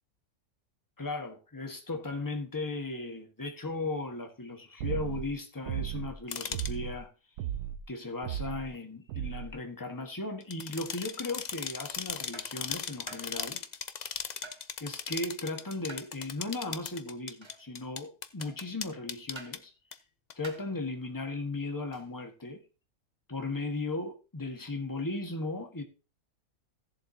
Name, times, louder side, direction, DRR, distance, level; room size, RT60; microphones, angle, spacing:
voice 1, 1.0-7.1 7.9-13.6 14.8-19.7 20.3-22.6 23.3-25.8, left 2 dB, 15° left, 1.4 m, -36 dB
sound 1, 4.8-5.3 5.7-6.2 6.5-7.0 7.4-7.8 8.2-8.7 9.1-9.5, right 11 dB, 85° right, 1.2 m, -35 dB
sound 2, 6.3-6.7 10.4-19.6 19.9-20.0 20.3-20.4, left 7 dB, 60° left, 0.4 m, -38 dB
sound 3, 11.3-11.5 12.3-12.6 13.1-13.4 14.4-14.7 15.9-16.1 17.4-17.7 18.4-18.7 19.3-19.6 20.4-20.7 21.9-22.1, right 3 dB, 20° right, 0.9 m, -48 dB
16.5 x 7.4 x 2.8 m
omnidirectional pair, 1.6 m